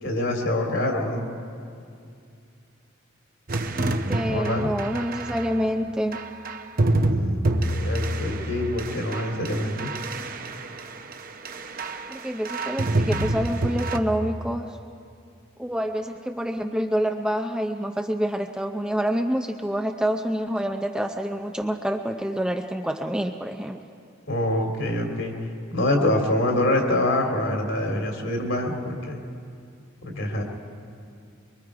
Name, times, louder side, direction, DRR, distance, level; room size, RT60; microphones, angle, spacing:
voice 1, 0.0-1.3 4.3-4.7 7.1-9.9 24.3-25.3 25.7-29.2 30.0-30.4, left 1 dB, 60° left, 2 dB, 2.7 m, -25 dB
sound 1, 3.5-5.5 6.1-11.1 11.4-12.2 12.4-14.0, right 2 dB, 40° right, 0.8 m, -27 dB
voice 2, 3.8-6.2 12.1-14.8 15.6-23.8, equal, 5° right, 4 dB, 0.5 m, -27 dB
24.0 x 23.5 x 4.8 m, 2.5 s
head